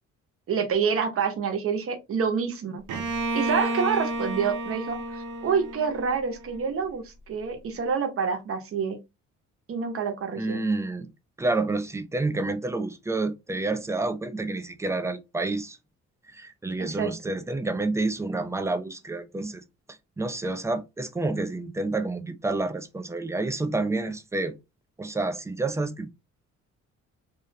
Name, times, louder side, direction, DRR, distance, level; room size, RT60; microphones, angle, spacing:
voice 1, 0.5-2.8 3.3-9.0 9.7-10.6 16.8-17.1, right 6 dB, 50° right, 0.7 m, -27 dB
Bowed string instrument, 2.9-6.6, right 2 dB, 85° right, 0.7 m, -31 dB
voice 2, 10.4-11.1 11.4-15.8 16.3-19.6 19.9-24.6 25.0-26.1, right 2 dB, 10° right, 0.3 m, -29 dB
2.4 x 2.0 x 2.6 m
cardioid pair, 90°, 30 cm